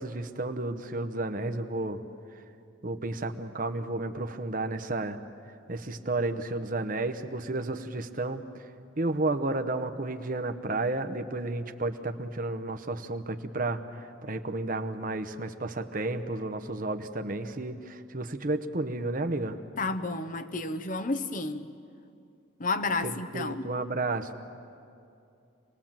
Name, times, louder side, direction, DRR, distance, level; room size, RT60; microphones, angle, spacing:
voice 1, 0.0-2.0 2.8-5.2 5.7-8.6 9.0-19.6 23.0-24.3, right 2 dB, 40° right, 0.9 m, -32 dB
voice 2, 19.8-21.7 22.6-23.7, left 3 dB, 40° left, 0.8 m, -31 dB
27.0 x 20.5 x 7.5 m
head